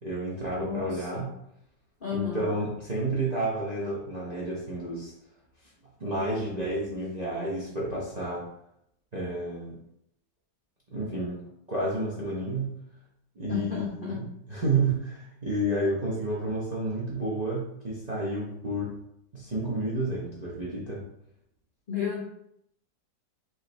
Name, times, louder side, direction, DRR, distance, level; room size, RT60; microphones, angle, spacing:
voice 1, 0.0-1.3 2.1-5.1 6.0-8.5 9.1-9.8 10.9-11.4 11.7-12.7 13.4-19.0 19.3-21.0, right 2 dB, 35° right, -6 dB, 0.7 m, -30 dB
voice 2, 0.5-1.2 2.0-2.5 13.5-14.2 21.9-22.2, left 6 dB, 55° left, -3 dB, 0.6 m, -32 dB
4.8 x 3.1 x 3.2 m, 0.76 s
omnidirectional pair, 1.9 m